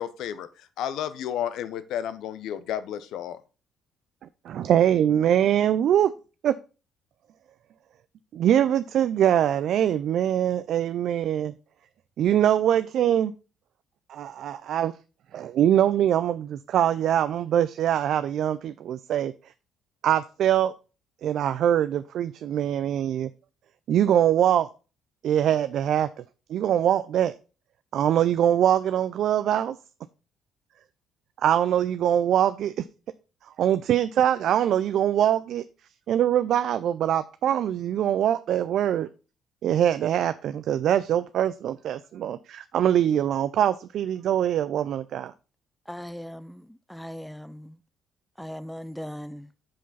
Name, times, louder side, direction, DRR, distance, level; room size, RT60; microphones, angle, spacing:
voice 1, 0.0-3.4, left 10 dB, 75° left, 0.6 m, -32 dB
voice 2, 4.5-6.1 6.4-6.5 8.3-11.5 12.2-13.3 14.1-14.9 15.3-19.3 20.0-20.7 21.2-23.3 23.9-24.7 25.2-26.1 26.5-27.3 27.9-29.8 31.4-32.8 33.6-35.6 36.1-39.1 39.6-45.3, right 10 dB, 65° right, 0.3 m, -23 dB
voice 3, 45.9-47.8 48.4-49.5, equal, 5° left, 0.5 m, -39 dB
5.9 x 5.1 x 4.0 m
supercardioid pair, 75°, 0 cm